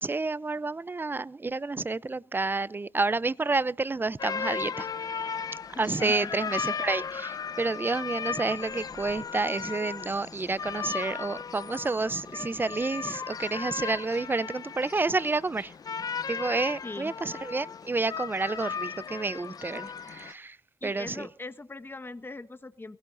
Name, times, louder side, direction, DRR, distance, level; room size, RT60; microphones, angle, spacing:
voice 1, 0.0-4.9 5.8-15.7 16.3-20.6 20.8-21.3, right 3 dB, 30° right, 0.6 m, -29 dB
sound 1, 4.2-20.3, left 6 dB, 60° left, 0.7 m, -36 dB
voice 2, 5.7-6.1 16.8-17.1 20.8-23.0, left 2 dB, 30° left, 1.4 m, -41 dB
23.0 x 17.0 x 2.6 m
supercardioid pair, 45°, 7 cm